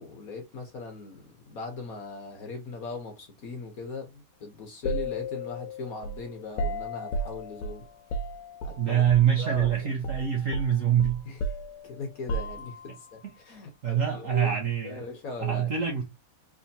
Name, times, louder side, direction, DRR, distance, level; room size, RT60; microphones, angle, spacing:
voice 1, 0.0-7.8 8.6-9.0 9.4-9.9 11.2-11.4 11.8-14.5 14.8-15.7, left 3 dB, 55° left, 1.2 m, -39 dB
sound 1, 4.8-9.3 9.6-9.8 10.0-13.0, equal, 75° left, 1.1 m, -34 dB
voice 2, 8.8-11.2 13.8-15.0 15.4-16.0, right 9 dB, 60° right, 0.8 m, -25 dB
3.5 x 3.3 x 2.7 m
omnidirectional pair, 2.2 m